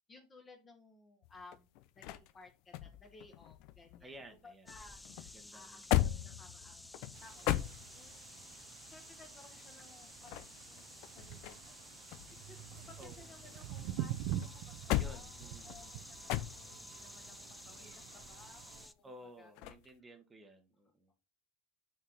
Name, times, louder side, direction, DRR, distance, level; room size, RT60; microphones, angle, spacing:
voice 1, 0.1-1.7 1.9-8.3 8.8-11.7 12.4-19.1 19.4-19.5 21.1-21.2, left 3 dB, 25° left, 4 dB, 1.5 m, -59 dB
sound 1, 1.2-4.4 4.7-8.3 10.0-11.8 12.1-13.9 14.3-17.0 19.6-19.9, left 14 dB, 60° left, 0.5 m, -38 dB
voice 2, 4.0-4.7 5.3-6.4 13.0-13.2 14.9-16.1 19.0-21.1, equal, 15° right, 5 dB, 1.2 m, -55 dB
sound 2, 4.7-18.9, left 1 dB, 5° left, 0.4 m, -53 dB
sound 3, 7.1-18.9, right 12 dB, 65° right, 0.7 m, -46 dB
5.8 x 4.5 x 3.9 m, 0.27 s
supercardioid pair, 105°, 0 cm